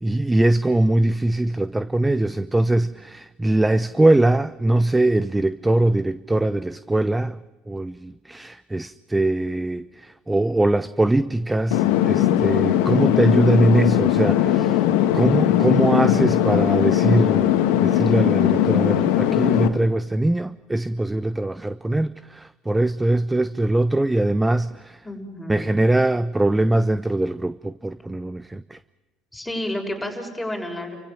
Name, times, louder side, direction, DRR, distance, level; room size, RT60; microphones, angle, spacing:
voice 1, 0.0-7.4 7.7-14.9 15.1-25.0 25.5-28.8, right 2 dB, 10° right, 0.7 m, -22 dB
sound 1, 11.7-19.7, left 11 dB, 80° left, 1.8 m, -19 dB
voice 2, 25.0-25.7 29.3-31.0, left 1 dB, 10° left, 6.5 m, -30 dB
29.5 x 16.0 x 7.6 m
hypercardioid pair, 80°, 0 cm